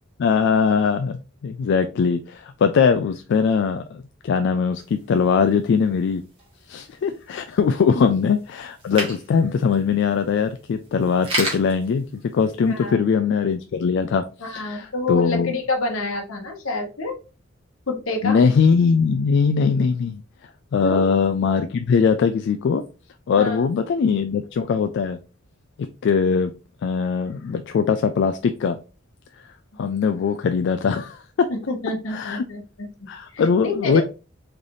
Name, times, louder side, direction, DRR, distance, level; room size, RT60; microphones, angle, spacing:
voice 1, 0.2-6.2 6.7-12.1 12.3-15.5 18.2-20.2 20.7-22.8 23.3-25.2 26.0-26.5 26.8-28.8 29.8-31.5 32.1-32.4 33.1-34.0, left 6 dB, 55° left, 0.3 m, -21 dB
sound 1, 4.7-12.9, right 1 dB, 25° right, 1.5 m, -35 dB
voice 2, 14.4-17.1 17.9-18.4 20.8-21.1 23.4-23.7 31.5-32.9 33.3-34.0, left 2 dB, 75° left, 1.1 m, -28 dB
3.8 x 3.3 x 2.7 m
head